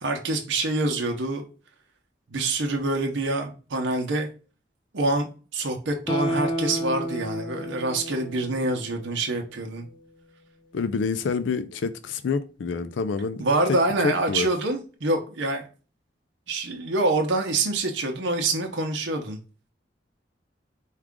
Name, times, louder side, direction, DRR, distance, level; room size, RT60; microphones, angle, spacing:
voice 1, 0.0-1.4 2.3-4.3 4.9-9.9 13.4-15.6 16.5-19.4, right 2 dB, 90° right, 0.8 m, -26 dB
Guitar, 6.1-9.3 9.7-9.8, equal, 25° left, 0.4 m, -31 dB
voice 2, 10.7-13.4 13.7-13.8 14.0-14.5, left 5 dB, 90° left, 0.4 m, -27 dB
4.7 x 2.4 x 3.5 m
head